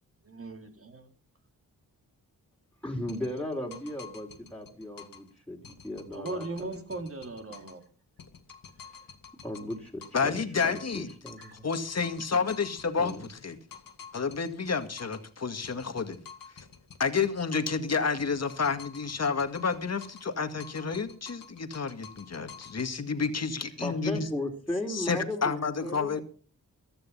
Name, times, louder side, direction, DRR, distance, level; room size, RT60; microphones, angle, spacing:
voice 1, 0.2-1.1 6.1-7.8, right 2 dB, 40° right, 3.2 m, -38 dB
voice 2, 2.8-6.7 9.4-11.6 13.0-13.2 23.8-26.2, left 1 dB, 5° left, 3.6 m, -36 dB
sound 1, 3.1-5.3 5.6-7.9 8.2-10.3 10.6-15.3 15.6-17.9 18.2-20.3 20.6-22.9, left 6 dB, 70° left, 2.1 m, -49 dB
voice 3, 10.1-11.1 11.6-13.6 14.1-16.2 17.0-24.3 24.9-26.2, left 5 dB, 45° left, 2.0 m, -30 dB
15.0 x 13.0 x 5.6 m
cardioid pair, 70°, 36 cm